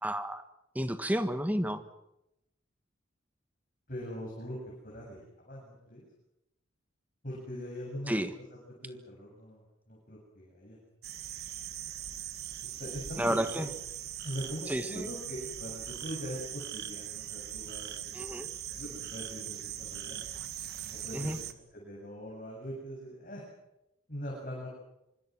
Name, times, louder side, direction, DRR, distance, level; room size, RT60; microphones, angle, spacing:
voice 1, 0.0-0.4 0.7-1.8 8.1-8.3 13.2-13.7 14.7-15.1 18.1-18.5 21.1-21.4, equal, 10° right, 9 dB, 1.5 m, -31 dB
voice 2, 3.9-4.6 4.8-6.0 7.2-8.1 8.5-10.8 12.8-13.6 14.2-18.4 18.7-20.2 20.9-23.4 24.1-24.7, equal, 40° left, -2 dB, 7.7 m, -42 dB
sound 1, 11.0-21.5, right 10 dB, 50° right, 1.8 m, -41 dB
26.0 x 25.5 x 6.3 m, 0.87 s
head